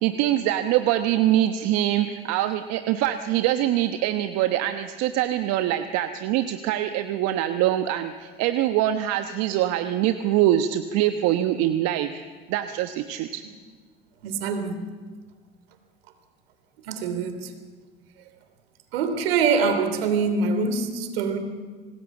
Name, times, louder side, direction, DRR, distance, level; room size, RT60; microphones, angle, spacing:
voice 1, 0.0-13.4, right 12 dB, 60° right, 1.2 m, -24 dB
voice 2, 14.2-14.7 16.8-17.5 18.9-21.4, right 5 dB, 75° right, 3.2 m, -24 dB
25.5 x 19.5 x 7.4 m
hypercardioid pair, 75°, 30 cm